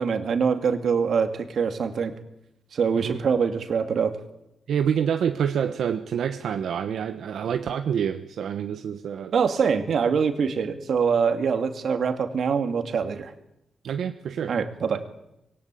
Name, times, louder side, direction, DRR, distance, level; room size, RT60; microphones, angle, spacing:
voice 1, 0.0-2.1 2.7-4.2 9.3-13.3 14.5-15.0, right 6 dB, 55° right, 7 dB, 2.5 m, -24 dB
voice 2, 4.7-9.3 13.8-14.6, right 8 dB, 75° right, 8 dB, 1.3 m, -27 dB
26.0 x 22.0 x 8.6 m, 0.85 s
wide cardioid pair, 165°, 0 cm